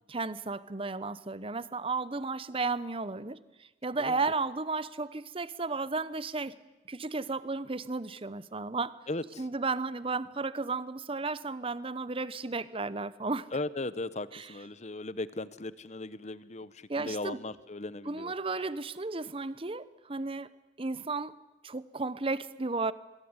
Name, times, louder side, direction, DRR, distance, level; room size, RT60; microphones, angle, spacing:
voice 1, 0.1-6.5 6.9-8.9 9.4-13.5 14.3-14.5 16.9-17.4 18.0-20.5 20.8-21.3 21.6-22.9, right 3 dB, 30° right, 16 dB, 0.9 m, -34 dB
voice 2, 9.1-9.4 13.5-18.3, left 2 dB, 40° left, 16 dB, 1.0 m, -37 dB
25.0 x 22.0 x 9.7 m, 1.1 s
head